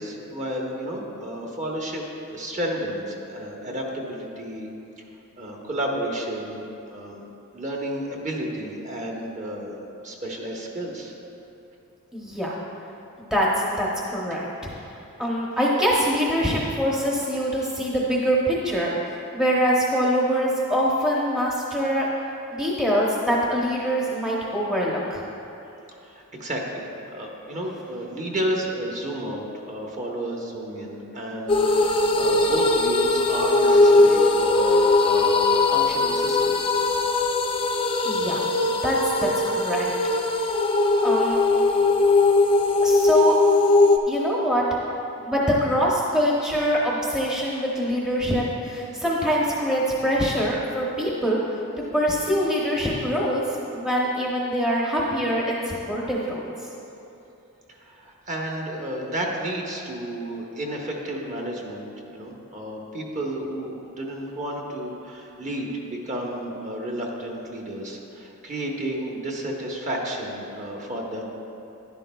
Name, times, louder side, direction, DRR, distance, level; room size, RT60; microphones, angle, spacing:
voice 1, 0.0-2.0 2.3-4.7 5.4-7.2 7.5-11.1 26.0-36.6 57.8-71.2, right 1 dB, 35° right, -1 dB, 1.1 m, -32 dB
voice 2, 12.1-12.6 13.2-13.5 13.8-14.7 15.2-22.1 22.5-25.2 38.0-38.5 38.8-39.9 41.0-41.4 42.8-43.4 44.1-44.7 45.2-51.4 51.9-56.4, equal, 5° right, -5 dB, 0.8 m, -24 dB
sound 1, 31.5-44.0, left 2 dB, 25° left, 0.4 m, -20 dB
11.5 x 10.5 x 2.3 m, 2.9 s
head